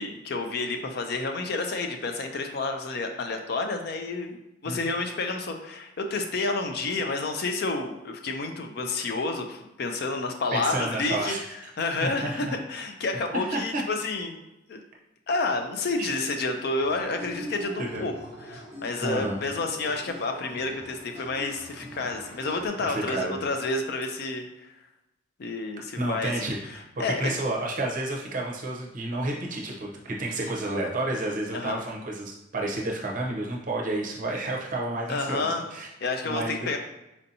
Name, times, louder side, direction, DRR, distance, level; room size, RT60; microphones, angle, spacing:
voice 1, 0.0-14.4 14.7-14.8 15.3-18.1 18.4-24.7 25.4-27.3 30.3-30.5 31.5-31.8 35.1-35.6 36.0-36.8, left 3 dB, 50° left, 5 dB, 0.4 m, -30 dB
voice 2, 10.5-11.4 12.0-12.6 13.3-13.8 16.0-16.1 17.8-18.1 19.0-19.4 22.8-23.4 26.0-35.9 36.3-36.7, right 2 dB, 40° right, -1 dB, 0.6 m, -30 dB
sound 1, 16.8-22.7, equal, 10° left, 0.8 m, -43 dB
4.3 x 2.7 x 2.7 m, 0.91 s
head